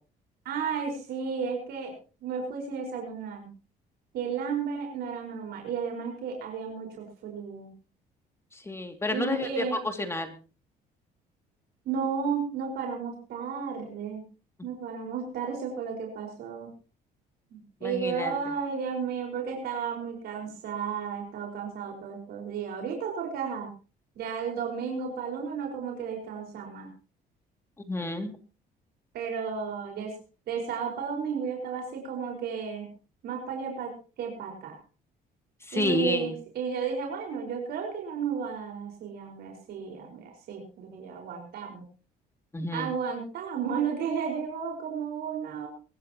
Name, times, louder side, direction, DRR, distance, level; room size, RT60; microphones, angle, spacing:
voice 1, 0.4-1.9 2.2-3.5 4.1-7.7 9.1-9.8 11.8-14.2 14.6-16.7 17.5-23.7 24.1-26.9 29.1-30.1 30.5-32.9 33.2-34.8 35.7-41.8 42.7-45.7, right 6 dB, 70° right, 1 dB, 5.0 m, -33 dB
voice 2, 8.7-9.6 10.0-10.3 17.8-18.3 27.9-28.3 35.7-36.3 42.5-42.9, left 1 dB, 15° left, 6 dB, 2.4 m, -30 dB
23.5 x 13.5 x 3.0 m, 0.35 s
cardioid pair, 110°, 17 cm